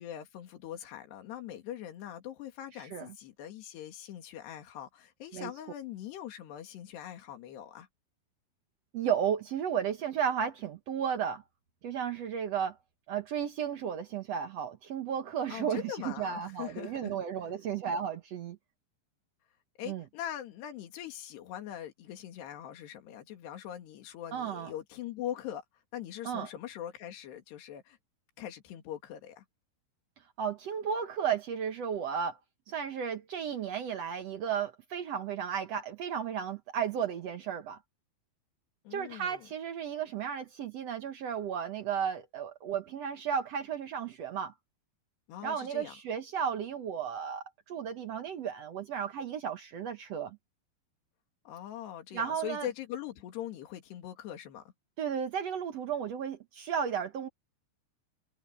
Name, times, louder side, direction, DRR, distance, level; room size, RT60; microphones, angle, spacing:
voice 1, 0.0-7.9 15.5-17.5 19.8-25.6 25.9-28.0 28.4-29.4 38.9-39.5 45.3-46.0 51.5-54.6, left 11 dB, 80° left, 4.4 m, -42 dB
voice 2, 8.9-11.4 11.8-12.8 13.1-18.6 19.9-20.0 24.3-24.7 26.2-26.5 30.4-32.4 32.7-37.8 38.9-44.5 45.4-50.4 52.1-52.7 55.0-57.3, right 8 dB, 80° right, 1.4 m, -34 dB
omnidirectional pair, 4.8 m